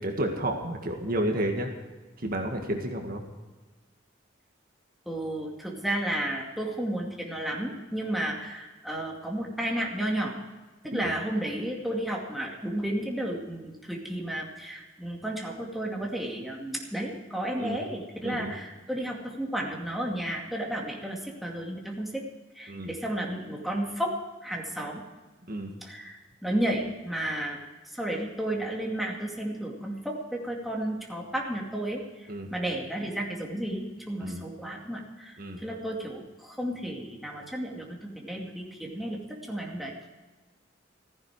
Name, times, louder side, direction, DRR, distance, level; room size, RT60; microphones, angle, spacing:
voice 1, 0.0-1.7 2.2-3.2 10.9-11.1 17.6-17.8 18.2-18.5 22.7-22.9 25.5-25.7 32.3-32.5 34.2-34.4 35.4-35.6, right 1 dB, 50° right, 3 dB, 1.8 m, -31 dB
voice 2, 5.1-10.4 10.8-22.2 22.6-24.2 24.4-25.0 25.8-27.6 27.9-39.2 39.5-39.9, right 1 dB, ahead, -1 dB, 2.3 m, -32 dB
15.5 x 15.0 x 4.9 m, 1.2 s
head